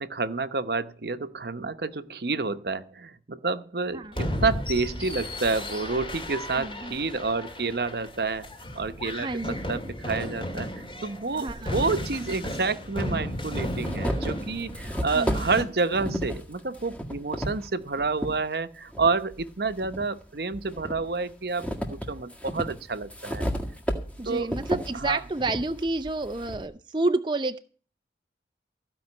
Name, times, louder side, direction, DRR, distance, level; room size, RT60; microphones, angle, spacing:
voice 1, 0.0-8.5 8.7-23.5 24.3-24.5 24.9-25.2, right 4 dB, 65° right, 12 dB, 0.9 m, -29 dB
sound 1, 4.1-15.6, left 1 dB, 30° left, 2.3 m, -34 dB
voice 2, 6.6-7.0 9.2-9.5 11.3-11.7 15.1-15.5 24.2-27.6, right 2 dB, 25° right, 8 dB, 0.5 m, -29 dB
sound 2, 11.5-11.6 12.6-12.7 13.2-18.4 18.9-20.1 20.5-26.7, equal, 5° left, 1.8 m, -33 dB
15.5 x 5.5 x 9.7 m, 0.41 s
head